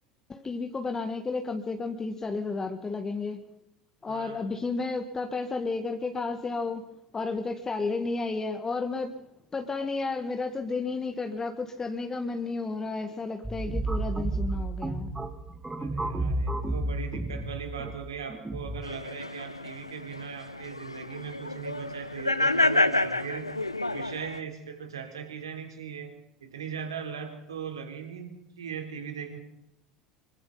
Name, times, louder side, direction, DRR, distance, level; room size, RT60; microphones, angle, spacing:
voice 1, 0.3-3.4 4.0-6.8 7.1-9.1 9.5-15.1, left 3 dB, 20° left, 6 dB, 1.9 m, -32 dB
voice 2, 4.1-4.4 15.8-23.5 23.9-29.4, right 7 dB, 75° right, 5 dB, 3.6 m, -39 dB
sound 1, 13.4-18.8, right 2 dB, 10° right, 2.1 m, -32 dB
sound 2, 18.8-24.4, left 2 dB, 90° left, 0.7 m, -29 dB
26.5 x 23.5 x 4.1 m, 0.79 s
figure-of-eight pair, 75°, 3 cm